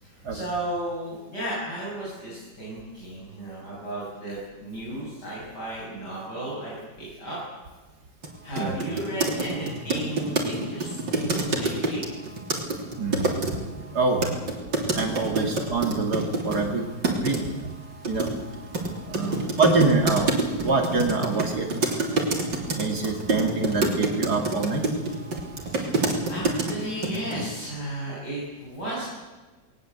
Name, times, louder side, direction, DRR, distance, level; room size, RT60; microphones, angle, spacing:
voice 1, 0.0-7.4 8.4-12.0 19.1-19.4 25.6-29.1, right 1 dB, 65° left, -7 dB, 8.2 m, -34 dB
sound 1, 8.2-8.3 8.6-13.5 14.2-16.6 17.0-17.4 18.0-26.7 27.0-27.5, right 3 dB, 80° right, 3.9 m, -26 dB
voice 2, 13.0-13.3 13.9-14.3 14.9-16.9 17.2-17.7 18.1-18.3 19.1-20.3 20.6-21.7 22.8-24.9, right 3 dB, 60° right, 3 dB, 2.7 m, -25 dB
20.0 x 19.5 x 8.1 m, 1.3 s
omnidirectional pair, 1.9 m